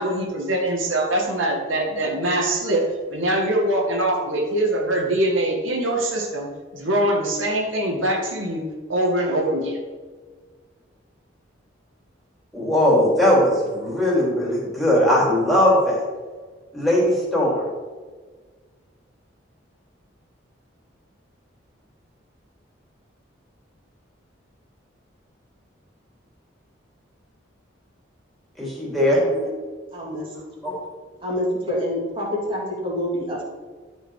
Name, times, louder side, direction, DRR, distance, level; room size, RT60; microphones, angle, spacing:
voice 1, 0.0-2.9 3.1-9.8, right 1 dB, 90° right, 0 dB, 1.9 m, -23 dB
voice 2, 12.5-16.0 16.7-17.6 28.6-29.5 30.6-30.8, left 1 dB, ahead, -6 dB, 3.2 m, -19 dB
voice 3, 29.9-30.3 30.6-30.7 31.2-33.4, left 1 dB, 25° right, -4 dB, 3.0 m, -27 dB
13.0 x 5.5 x 4.9 m, 1.4 s
head